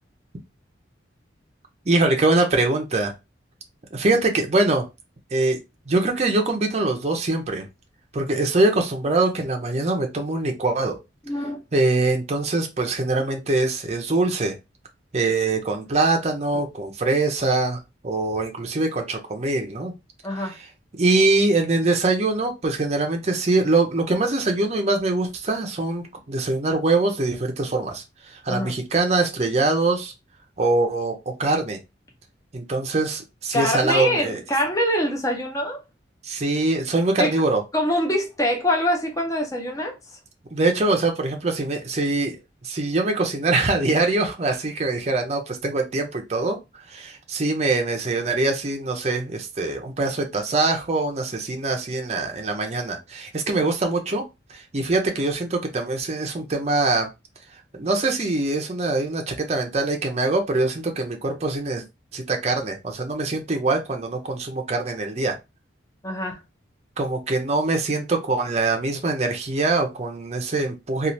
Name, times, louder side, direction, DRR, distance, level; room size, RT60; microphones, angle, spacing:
voice 1, 1.9-3.1 3.9-4.9 5.3-5.6 5.9-7.7 8.1-11.0 11.7-14.6 15.1-19.9 20.4-20.6 20.9-30.1 30.6-31.8 32.5-34.4 36.2-37.6 40.5-54.2 54.5-57.1 57.7-61.8 62.1-65.4 67.0-71.1, right 2 dB, 35° right, 0.5 m, -23 dB
voice 2, 11.3-11.6 20.2-20.6 28.5-28.7 33.5-35.8 37.2-37.4 37.7-39.9 66.0-66.4, equal, 15° left, 0.6 m, -24 dB
3.1 x 2.4 x 2.6 m
head